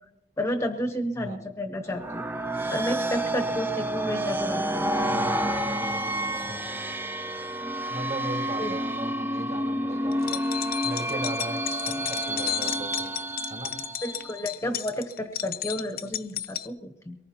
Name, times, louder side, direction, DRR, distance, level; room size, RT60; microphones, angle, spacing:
voice 1, 0.4-2.2 2.7-4.9 8.6-8.7 11.1-11.2 14.0-17.2, left 1 dB, 15° left, 5 dB, 0.8 m, -31 dB
sound 1, 1.9-14.4, right 1 dB, 10° right, 0.5 m, -29 dB
voice 2, 6.3-6.7 7.9-10.4 10.8-13.1 13.5-13.8, right 1 dB, 45° right, 0 dB, 3.3 m, -38 dB
sound 2, 10.1-16.7, left 12 dB, 55° left, 0.6 m, -33 dB
23.0 x 19.5 x 2.8 m, 0.90 s
head